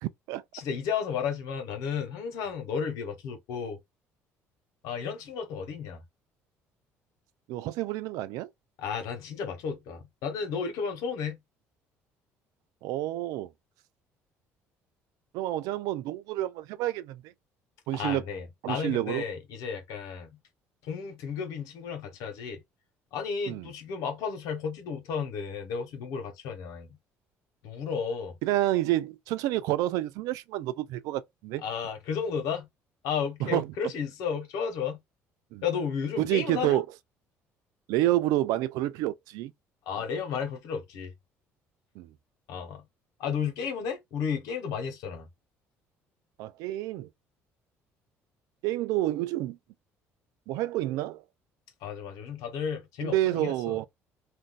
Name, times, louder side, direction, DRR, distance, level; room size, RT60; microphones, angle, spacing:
voice 1, 0.0-0.4 7.5-8.5 12.8-13.5 15.3-17.2 17.9-18.2 18.6-19.2 23.5-23.7 28.4-31.6 33.4-33.7 35.5-35.6 36.2-36.8 37.9-39.5 42.0-42.1 46.4-47.1 48.6-49.6 50.5-51.2 53.0-53.9, right 15 dB, 80° right, 0.4 m, -29 dB
voice 2, 0.5-3.8 4.8-6.0 8.8-11.4 17.9-20.4 20.8-22.6 23.1-27.0 27.6-28.4 31.6-32.7 33.0-35.0 35.6-36.8 39.9-41.1 42.5-42.8 43.2-45.3 51.8-53.8, left 6 dB, 80° left, 1.0 m, -33 dB
2.6 x 2.2 x 3.7 m
supercardioid pair, 85°, 6 cm